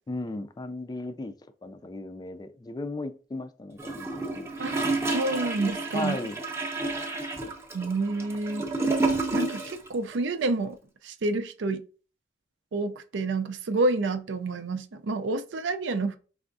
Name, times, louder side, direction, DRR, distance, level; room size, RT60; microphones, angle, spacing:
voice 1, 0.1-1.3 1.6-4.5 5.9-6.4, left 2 dB, 20° left, 0.3 m, -36 dB
Gurgling / Toilet flush, 3.8-9.9 10.1-10.2, right 2 dB, 15° right, 0.6 m, -30 dB
voice 2, 5.1-6.3 7.7-8.7 9.3-10.8 11.0-11.8 12.7-16.2, right 2 dB, 90° right, 0.5 m, -28 dB
4.8 x 3.4 x 2.5 m
head